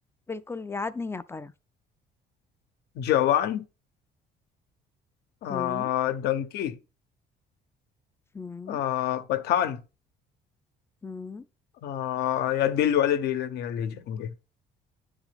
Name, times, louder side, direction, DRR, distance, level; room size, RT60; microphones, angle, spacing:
voice 1, 0.3-1.5 5.5-5.9 8.3-8.8 11.0-11.5, left 4 dB, 15° left, 0.4 m, -35 dB
voice 2, 3.0-3.6 5.4-6.8 8.7-9.8 11.8-14.3, left 11 dB, 75° left, 0.7 m, -26 dB
9.7 x 3.6 x 3.4 m
cardioid pair, 110°, 17 cm